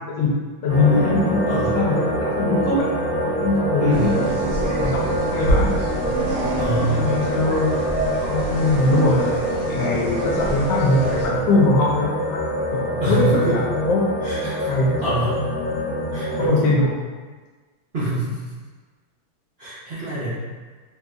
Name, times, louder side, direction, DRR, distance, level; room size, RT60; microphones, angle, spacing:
voice 1, 0.6-2.9 3.4-5.0 5.3-5.8 6.9-7.7 8.3-12.4 12.7-14.0 14.7-15.2 16.4-16.9, left 2 dB, 75° left, -3 dB, 1.1 m, -21 dB
sound 1, 0.7-16.5, equal, 40° left, 0.4 m, -25 dB
voice 2, 1.5-1.8 3.8-4.2 6.6-7.2 13.0-13.7 14.2-14.7 15.0-15.4 16.1-16.9 17.9-18.4 19.6-20.3, right 1 dB, 80° right, -11 dB, 0.5 m, -25 dB
sound 2, 3.9-11.3, right 1 dB, 60° right, 0.9 m, -27 dB
3.2 x 2.6 x 2.4 m, 1.4 s
omnidirectional pair, 2.2 m